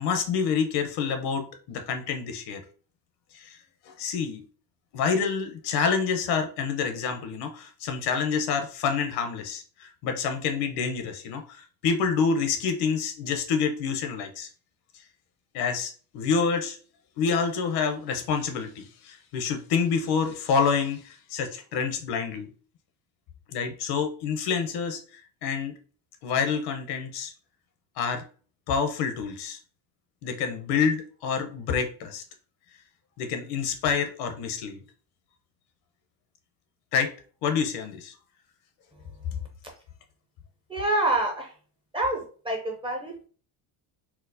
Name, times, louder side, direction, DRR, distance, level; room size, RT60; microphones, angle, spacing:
voice 1, 0.0-2.6 3.3-3.6 3.9-4.4 4.9-14.5 15.5-16.8 17.2-22.5 23.5-25.7 26.2-27.3 28.0-28.2 28.7-29.6 30.2-32.2 33.2-34.8 36.9-37.1 37.4-38.1, left 6 dB, 60° left, 6 dB, 0.8 m, -27 dB
voice 2, 40.7-41.5 41.9-43.3, right 1 dB, 15° right, 0 dB, 0.5 m, -27 dB
4.4 x 2.0 x 2.6 m, 0.40 s
cardioid pair, 140°, 43 cm